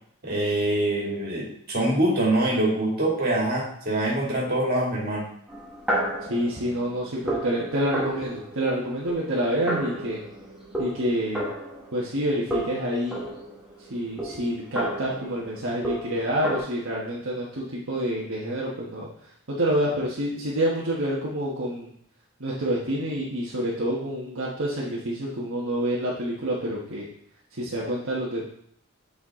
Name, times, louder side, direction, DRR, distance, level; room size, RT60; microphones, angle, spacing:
voice 1, 0.2-5.3, right 1 dB, 45° right, -4 dB, 2.2 m, -24 dB
sound 1, 5.5-12.2 12.5-16.6, right 1 dB, 5° right, 1.5 m, -33 dB
voice 2, 6.3-10.2 10.8-11.5 11.9-13.2 13.9-19.1 19.5-21.9 22.4-27.0 27.6-28.4, equal, 60° right, -6 dB, 1.3 m, -27 dB
7.7 x 5.0 x 3.7 m, 0.65 s
head